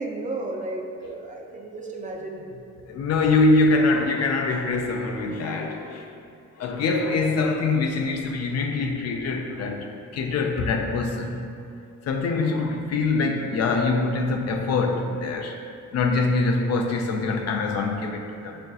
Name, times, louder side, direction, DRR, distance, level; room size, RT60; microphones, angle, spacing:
voice 1, 0.0-2.6 12.1-12.2 16.1-16.2, right 2 dB, 25° right, 0 dB, 0.4 m, -33 dB
voice 2, 2.9-6.1 6.6-11.5 12.0-15.6 15.9-18.6, left 3 dB, 55° left, 3 dB, 0.4 m, -24 dB
5.3 x 2.5 x 2.3 m, 2.4 s
cardioid pair, 90°, 30 cm